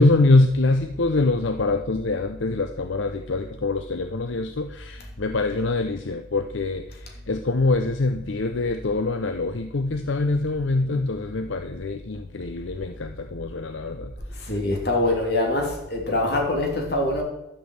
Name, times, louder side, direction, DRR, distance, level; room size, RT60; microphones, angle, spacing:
voice 1, 0.0-6.8 7.3-14.1, left 2 dB, 80° left, 0.7 m, -24 dB
voice 2, 14.3-17.2, left 2 dB, 55° left, 3.0 m, -24 dB
12.5 x 6.2 x 7.9 m
head